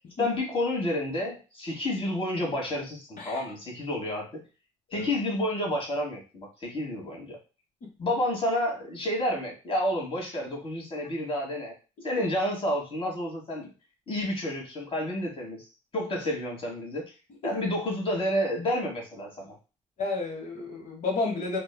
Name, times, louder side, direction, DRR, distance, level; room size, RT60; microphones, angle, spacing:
voice 1, 0.2-4.4 4.9-7.4 8.0-11.7 12.0-13.7 14.1-15.6 15.9-17.0 17.4-19.6, left 1 dB, 35° left, 0 dB, 1.3 m, -30 dB
voice 2, 20.0-21.6, left 3 dB, 55° left, 1 dB, 1.0 m, -31 dB
2.9 x 2.2 x 2.2 m, 0.32 s
supercardioid pair, 60°, 15 cm